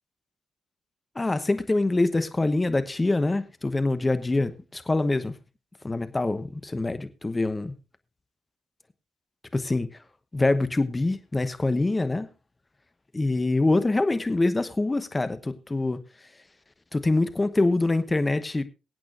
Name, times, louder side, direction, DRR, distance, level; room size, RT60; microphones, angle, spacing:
voice 1, 1.1-5.3 5.8-7.7 9.5-9.9 10.3-12.3 13.1-16.0 16.9-18.6, left 2 dB, 25° left, 1.1 m, -25 dB
23.0 x 8.5 x 2.6 m
hypercardioid pair, 45°, 0 cm